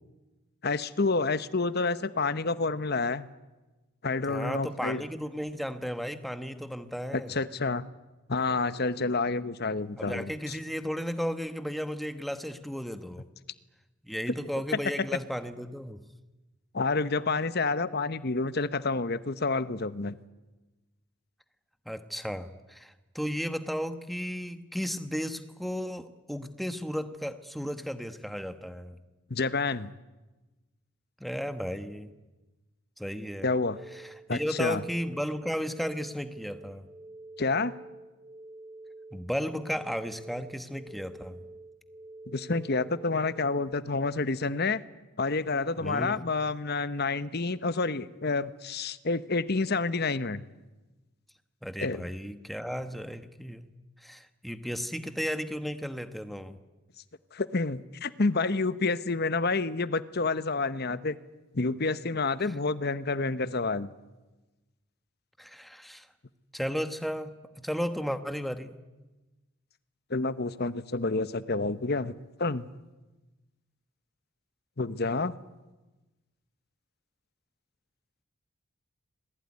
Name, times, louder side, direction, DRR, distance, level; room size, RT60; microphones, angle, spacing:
voice 1, 0.6-3.3 4.0-5.0 7.1-7.9 8.3-10.6 14.7-15.1 16.7-20.1 29.3-29.9 33.4-33.8 34.3-34.8 37.4-37.7 42.3-44.8 45.2-50.4 51.8-52.0 57.3-61.2 61.5-63.9 70.1-72.1 72.4-72.7 74.8-75.4, left 3 dB, 50° left, 14 dB, 1.0 m, -29 dB
voice 2, 4.3-7.3 10.0-13.2 14.1-16.0 21.8-29.0 31.2-32.1 33.0-33.5 33.9-36.9 39.1-41.4 45.8-46.2 51.6-53.7 54.0-56.6 65.4-66.1 66.5-68.8, equal, ahead, 9 dB, 1.2 m, -34 dB
sound 1, 33.7-43.7, right 2 dB, 20° right, 0.8 m, -48 dB
26.0 x 20.0 x 9.7 m, 1.1 s
head